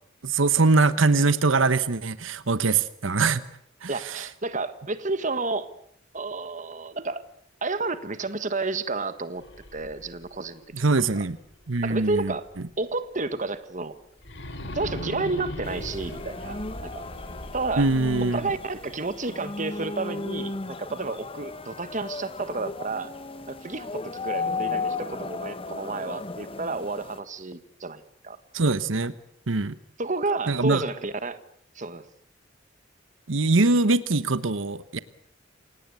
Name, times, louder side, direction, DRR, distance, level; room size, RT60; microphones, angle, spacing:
voice 1, 0.2-3.4 3.8-4.3 10.7-11.4 11.7-12.3 17.8-18.4 28.5-29.1 29.5-29.7 30.5-30.8 33.3-35.0, right 3 dB, 85° right, 14 dB, 1.1 m, -22 dB
voice 2, 3.9-5.7 6.1-7.2 7.6-9.4 9.7-10.6 11.1-11.2 11.8-12.5 12.8-13.9 14.7-17.0 17.5-17.9 18.2-20.5 20.8-23.1 23.5-28.4 30.0-31.4 31.7-32.0, right 3 dB, 40° right, 12 dB, 1.5 m, -31 dB
sound 1, 9.3-12.3 12.7-12.8 14.2-19.3, left 1 dB, 65° left, 3.7 m, -40 dB
sound 2, 15.6-27.2, left 3 dB, 30° left, 1.1 m, -35 dB
28.0 x 18.0 x 8.4 m, 0.69 s
head